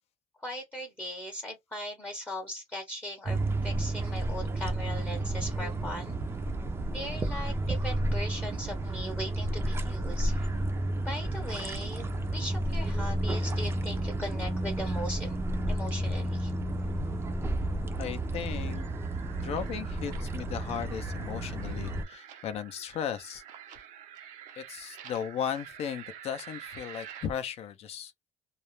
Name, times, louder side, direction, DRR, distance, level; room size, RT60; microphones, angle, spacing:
voice 1, 0.4-6.2 6.9-10.5 11.0-15.4 15.7-16.5, left 1 dB, 15° left, 0.7 m, -39 dB
sound 1, 3.3-22.0, right 1 dB, 20° right, 0.4 m, -31 dB
sound 2, 5.3-5.7 6.1-6.5 6.9-7.4 7.8-8.2 8.6-9.0 9.4-9.8 10.2-10.7 11.1-11.5 11.9-12.3 12.7-13.1 13.5-13.9 14.3-14.8 15.2-15.6 16.0-16.4 16.8-17.2 17.6-18.0 18.4-18.9 19.2-19.7 20.1-20.2 20.5-20.6 20.9-21.0 21.3-21.4 21.7-21.8 22.1-22.2 22.5-22.6 22.9-23.0 23.3-23.4 23.7-23.8, right 4 dB, 75° left, 0.8 m, -47 dB
voice 2, 18.0-18.9 19.3-23.4 24.6-28.1, left 8 dB, 55° left, 0.4 m, -36 dB
sound 3, 18.5-27.3, right 9 dB, 85° right, 0.6 m, -48 dB
2.3 x 2.0 x 2.9 m
cardioid pair, 150°, 13 cm